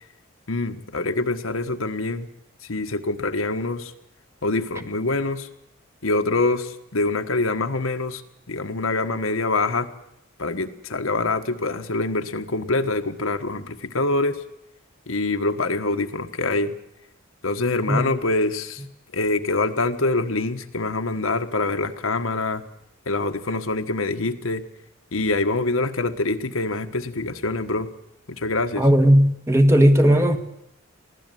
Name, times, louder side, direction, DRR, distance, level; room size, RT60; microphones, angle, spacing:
voice 1, 0.5-2.3 2.7-3.9 4.4-5.5 6.0-8.2 8.5-9.9 10.4-14.4 15.1-16.7 17.4-18.8 19.1-22.6 23.1-24.6 25.1-27.9 28.3-28.9, left 2 dB, 90° left, 6 dB, 1.4 m, -25 dB
voice 2, 28.8-30.4, equal, 15° right, 7 dB, 1.5 m, -16 dB
22.5 x 16.0 x 9.2 m, 0.80 s
head